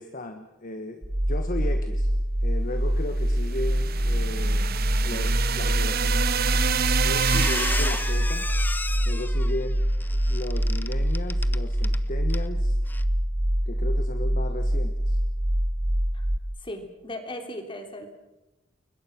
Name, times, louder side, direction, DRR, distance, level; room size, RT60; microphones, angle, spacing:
voice 1, 0.0-2.1 2.4-4.7 5.0-6.6 7.0-8.5 9.0-9.8 10.3-12.8 13.7-15.2, left 1 dB, 45° left, 7 dB, 1.4 m, -35 dB
sound 1, 1.0-16.4, equal, 25° right, 1.1 m, -25 dB
sound 2, 3.3-8.3, right 7 dB, 50° right, 0.9 m, -28 dB
Squeak, 6.5-6.7 7.0-12.0 12.3-12.5 12.9-13.0, left 2 dB, 10° left, 0.8 m, -33 dB
voice 2, 16.6-18.1, left 1 dB, 25° left, 5 dB, 3.4 m, -37 dB
29.5 x 22.5 x 6.1 m, 0.96 s
head